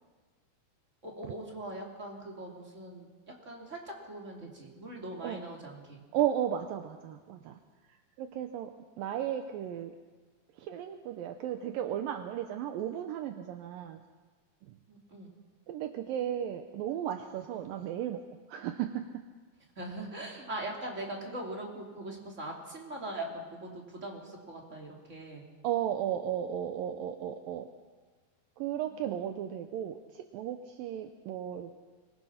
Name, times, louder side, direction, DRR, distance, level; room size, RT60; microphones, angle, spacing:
voice 1, 1.0-3.1 3.4-6.0 14.9-15.3 19.8-25.4 28.9-29.2, right 1 dB, 20° right, -1 dB, 3.1 m, -41 dB
voice 2, 6.1-7.6 7.9-9.9 10.6-14.0 14.6-14.8 15.7-19.2 25.6-27.7 28.6-31.7, right 10 dB, 75° right, 7 dB, 2.4 m, -35 dB
24.0 x 21.0 x 5.8 m, 1.4 s
omnidirectional pair, 4.3 m